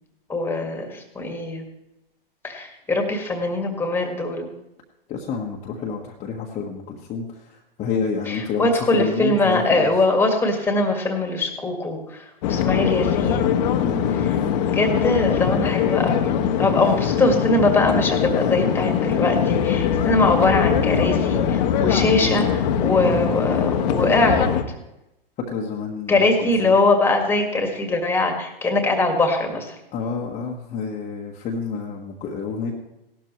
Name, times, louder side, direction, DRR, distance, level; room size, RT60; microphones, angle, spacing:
voice 1, 0.3-1.6 2.4-4.5 8.3-13.6 14.2-14.4 14.7-24.5 26.1-29.8, left 2 dB, 10° left, 4 dB, 1.9 m, -22 dB
voice 2, 5.1-7.3 7.8-8.7 8.9-9.9 13.8-14.3 21.9-22.3 25.5-26.3 26.6-26.7 29.9-32.7, left 5 dB, 25° left, -1 dB, 1.3 m, -28 dB
sound 1, 12.4-24.6, left 8 dB, 45° left, 1.2 m, -22 dB
17.0 x 12.5 x 3.2 m, 0.91 s
hypercardioid pair, 125°, 29 cm